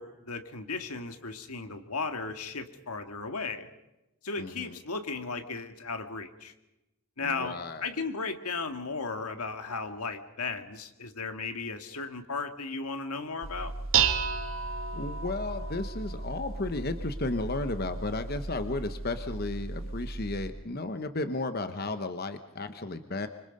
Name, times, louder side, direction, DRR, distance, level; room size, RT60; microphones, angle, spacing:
voice 1, 0.0-3.7 4.2-6.5 7.2-13.7, left 4 dB, 90° left, 7 dB, 2.0 m, -35 dB
voice 2, 4.4-4.8 7.2-7.9 14.9-23.3, left 2 dB, 45° left, 9 dB, 1.0 m, -34 dB
Dishes pots and pans, 13.4-20.5, right 6 dB, 60° right, 1.4 m, -33 dB
26.0 x 25.5 x 5.4 m, 0.95 s
head